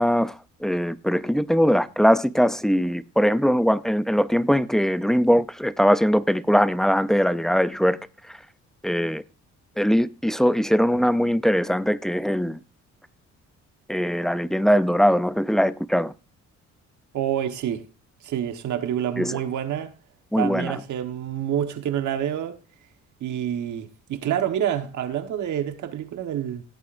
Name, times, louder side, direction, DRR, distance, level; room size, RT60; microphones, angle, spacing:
voice 1, 0.0-8.0 8.3-8.4 8.8-9.2 9.8-12.6 13.9-16.1 19.2-19.4 20.3-20.8, equal, ahead, 0.5 m, -21 dB
voice 2, 17.1-17.8 18.2-19.9 20.3-22.6 23.2-26.6, right 10 dB, 75° right, 1.4 m, -27 dB
16.0 x 8.4 x 2.6 m
cardioid pair, 90°, 30 cm